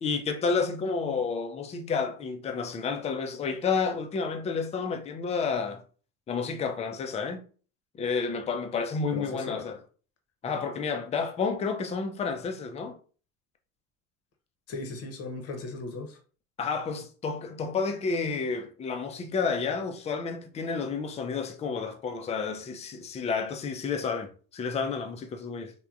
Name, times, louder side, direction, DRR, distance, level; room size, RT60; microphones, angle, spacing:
voice 1, 0.0-5.8 6.3-7.4 8.0-9.8 10.4-13.0 16.6-25.7, left 5 dB, 15° left, 0.4 m, -30 dB
voice 2, 9.1-9.8 14.7-16.2, left 3 dB, 35° left, 0.8 m, -37 dB
3.3 x 2.2 x 2.4 m
hypercardioid pair, 70°, 40 cm